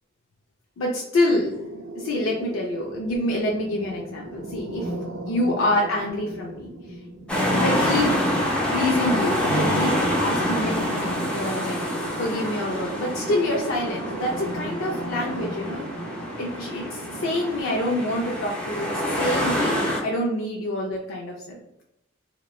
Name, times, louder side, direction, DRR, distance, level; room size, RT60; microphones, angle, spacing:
voice 1, 0.8-1.5 1.9-4.9 5.3-6.7 7.5-8.1 8.7-9.9 10.2-11.8 12.2-15.9 16.4-19.8 20.0-21.6, left 1 dB, 80° left, -2 dB, 0.4 m, -26 dB
sound 1, 1.5-17.6, right 2 dB, 75° right, 0.5 m, -37 dB
sound 2, 7.3-20.0, equal, 5° left, 0.5 m, -26 dB
2.9 x 2.1 x 2.3 m, 0.83 s
head